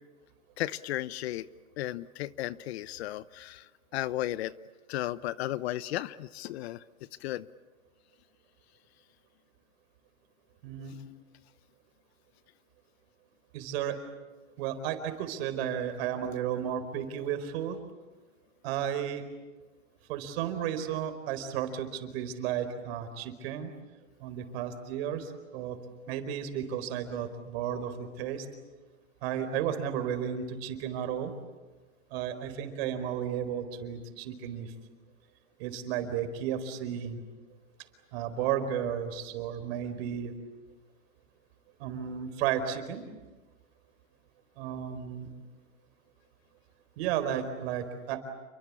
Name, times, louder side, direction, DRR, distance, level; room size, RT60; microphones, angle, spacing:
voice 1, 0.6-1.5 1.8-3.7 3.9-4.5 4.9-6.8 7.2-7.5, left 14 dB, 55° left, 17 dB, 0.9 m, -34 dB
voice 2, 10.6-11.0 13.5-14.0 14.6-17.8 18.6-19.2 20.1-23.7 24.2-25.8 26.1-28.5 29.2-31.3 32.1-34.7 35.6-37.2 38.1-40.3 41.8-43.0 44.6-45.3 47.0-48.2, right 9 dB, 50° right, 9 dB, 4.5 m, -33 dB
29.5 x 23.5 x 8.6 m, 1.3 s
hypercardioid pair, 145°, 39 cm